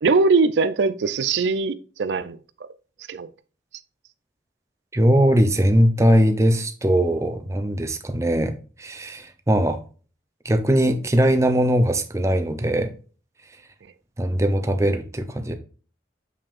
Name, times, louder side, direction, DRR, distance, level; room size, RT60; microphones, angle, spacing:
voice 1, 0.0-2.4 3.1-3.3, right 4 dB, 85° right, 0.4 m, -21 dB
voice 2, 4.9-8.5 8.8-9.8 10.4-12.9 14.2-15.5, equal, 15° right, 0.6 m, -20 dB
6.7 x 6.0 x 2.5 m
head